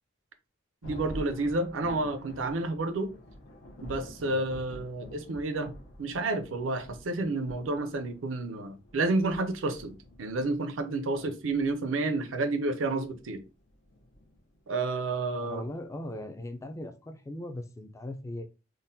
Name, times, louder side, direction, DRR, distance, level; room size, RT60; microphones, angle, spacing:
Thunder, 0.8-14.8, equal, 90° left, 0.7 m, -48 dB
voice 1, 0.8-3.1 3.8-5.7 6.0-13.4 14.7-15.6, right 2 dB, 85° right, 0.5 m, -30 dB
voice 2, 15.4-18.5, left 1 dB, 15° left, 0.3 m, -39 dB
3.7 x 2.1 x 2.6 m
head